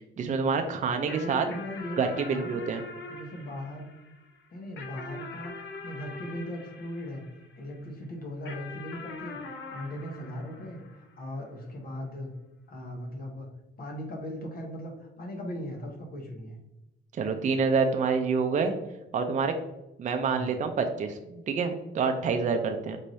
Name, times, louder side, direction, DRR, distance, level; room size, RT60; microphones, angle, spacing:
voice 1, 0.2-1.4 2.0-2.8 17.2-18.7 19.1-19.5 20.0-23.0, right 5 dB, 40° right, 6 dB, 0.5 m, -27 dB
voice 2, 1.0-2.6 3.1-3.9 4.5-5.5 5.8-7.2 7.6-9.4 9.7-12.3 12.7-13.5 13.8-16.6 20.3-20.5, left 1 dB, 50° left, 2 dB, 1.1 m, -38 dB
sound 1, 1.1-7.8 8.5-11.3, left 3 dB, 65° left, 0.7 m, -43 dB
4.5 x 2.6 x 3.1 m, 0.92 s
cardioid pair, 90°, 20 cm